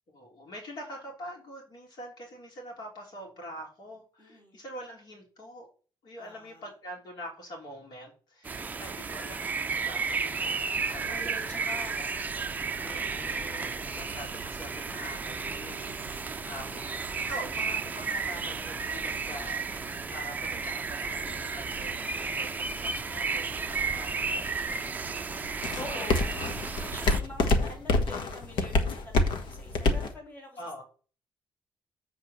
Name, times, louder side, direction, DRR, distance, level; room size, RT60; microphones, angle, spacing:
voice 1, 0.1-5.7 6.0-11.0 11.9-12.1 12.8-25.1 30.6-30.8, equal, 65° left, 0 dB, 3.3 m, -45 dB
voice 2, 4.2-4.6 6.2-6.7 10.9-12.0 12.7-13.3 16.3-17.3 25.7-30.8, left 1 dB, 20° left, -1 dB, 2.7 m, -46 dB
sound 1, 8.4-27.2, right 5 dB, 20° right, 0.4 m, -33 dB
sound 2, 10.6-30.1, left 2 dB, 85° left, 1.3 m, -33 dB
8.0 x 4.6 x 6.9 m, 0.38 s
wide cardioid pair, 170°, 8 cm